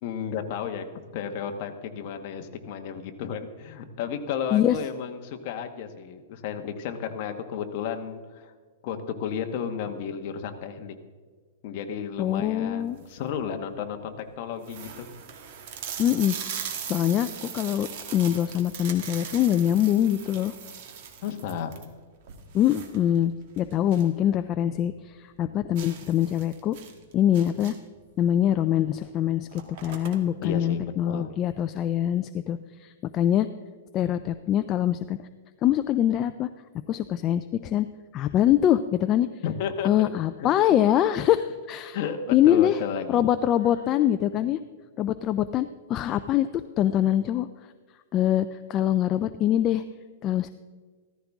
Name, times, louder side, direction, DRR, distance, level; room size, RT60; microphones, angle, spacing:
voice 1, 0.0-8.4 8.8-10.9 11.6-15.1 21.2-21.7 30.4-31.3 39.4-40.1 40.4-40.5 41.9-42.2 42.4-43.2 44.3-44.4, left 7 dB, 40° left, 6 dB, 1.2 m, -33 dB
voice 2, 12.2-13.0 16.0-16.3 16.9-20.5 22.5-26.8 27.1-27.7 28.2-33.5 33.9-35.2 35.6-36.5 36.9-37.9 38.1-39.3 39.8-42.0 42.3-42.8 43.1-44.6 45.0-47.5 48.1-49.8 50.2-50.5, left 11 dB, 25° left, 10 dB, 0.3 m, -24 dB
sound 1, 12.8-13.3 13.9-14.0 14.2-14.3 14.6-24.2 24.5-24.6 25.0-25.1 25.8-28.0 28.9-29.1 29.3-30.5, right 8 dB, 45° right, 1.6 m, -40 dB
Sigh, 43.4-44.1, equal, 60° left, 2.1 m, -47 dB
15.0 x 14.0 x 3.6 m, 1.5 s
supercardioid pair, 160°, 0 cm